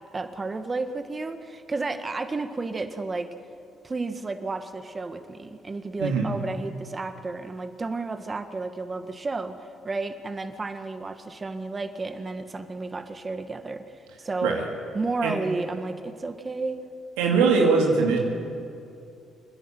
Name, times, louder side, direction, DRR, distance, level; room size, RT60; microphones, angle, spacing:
voice 1, 0.1-3.3 3.8-9.6 9.8-14.6 14.9-16.8, right 3 dB, 35° right, 8 dB, 1.8 m, -32 dB
voice 2, 17.2-18.2, right 4 dB, 85° right, 0 dB, 2.5 m, -21 dB
28.0 x 10.5 x 9.1 m, 2.6 s
hypercardioid pair, 55°, 0 cm